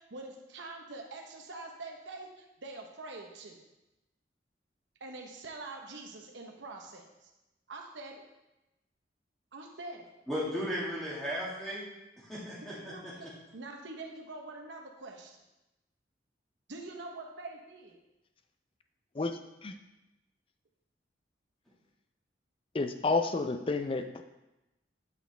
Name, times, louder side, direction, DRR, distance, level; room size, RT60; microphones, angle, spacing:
voice 1, 0.0-3.6 5.0-7.3 7.7-8.2 9.5-10.1 12.5-15.4 16.7-18.0, right 2 dB, 90° right, 2 dB, 0.8 m, -45 dB
voice 2, 10.3-11.9 12.2-13.3, equal, ahead, -8 dB, 1.9 m, -36 dB
voice 3, 19.2-19.7 22.7-24.2, left 3 dB, 30° left, 8 dB, 0.4 m, -31 dB
8.0 x 5.2 x 3.3 m, 0.97 s
head